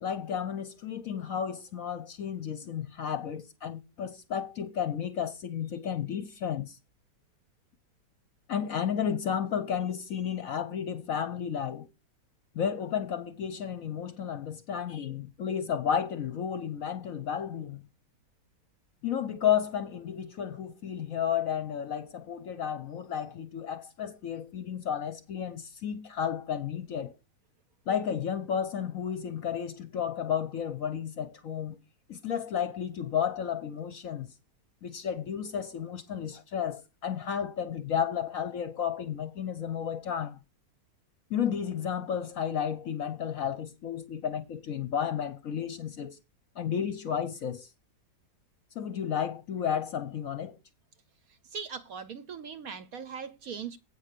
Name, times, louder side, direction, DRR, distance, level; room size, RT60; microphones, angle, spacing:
voice 1, 0.0-6.8 8.5-11.9 12.5-17.8 19.0-27.1 27.9-31.8 32.1-34.3 34.8-40.4 41.3-46.2 46.6-47.7 48.7-50.6, left 8 dB, 60° left, 0.9 m, -32 dB
voice 2, 51.5-53.8, right 6 dB, 65° right, 1.0 m, -39 dB
8.4 x 5.6 x 6.6 m
omnidirectional pair, 2.0 m